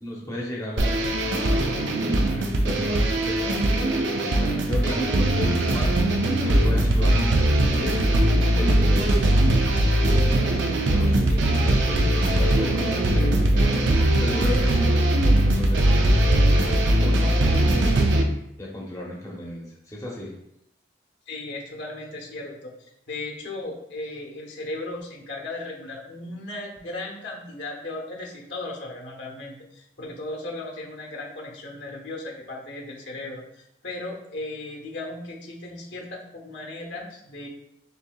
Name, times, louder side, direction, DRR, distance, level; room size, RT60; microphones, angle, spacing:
voice 1, 0.0-1.8 2.3-8.0 8.5-9.3 10.0-17.9 18.6-20.3, left 1 dB, 20° left, -4 dB, 0.7 m, -34 dB
sound 1, 0.8-18.2, right 1 dB, 80° right, 0.5 m, -20 dB
voice 2, 21.3-37.5, left 2 dB, 70° left, -1 dB, 1.0 m, -36 dB
6.6 x 2.7 x 2.3 m, 0.79 s
head